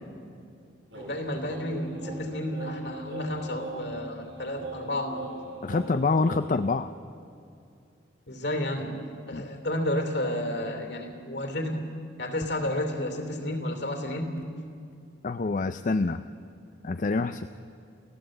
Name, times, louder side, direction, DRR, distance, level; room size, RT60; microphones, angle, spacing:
voice 1, 0.9-5.3 8.3-11.8 12.2-14.5, left 1 dB, 65° left, 5 dB, 3.0 m, -31 dB
sound 1, 0.9-6.6, right 2 dB, 75° right, 5.9 m, -41 dB
voice 2, 5.6-6.9 9.3-9.4 15.2-16.2 16.8-17.5, left 3 dB, 45° left, 10 dB, 0.5 m, -26 dB
30.0 x 15.5 x 7.8 m, 2.5 s
head